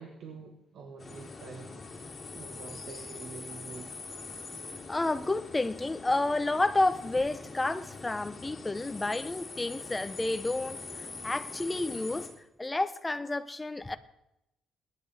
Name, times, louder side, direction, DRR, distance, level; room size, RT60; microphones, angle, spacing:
voice 1, 0.0-1.7 2.3-3.9, right 5 dB, 70° right, 1.4 m, -46 dB
sound 1, 1.0-12.3, left 3 dB, 35° left, 3.1 m, -43 dB
voice 2, 4.9-12.3 12.6-14.0, left 2 dB, 15° left, 0.8 m, -30 dB
21.5 x 10.5 x 3.4 m
cardioid pair, 90°, 0 cm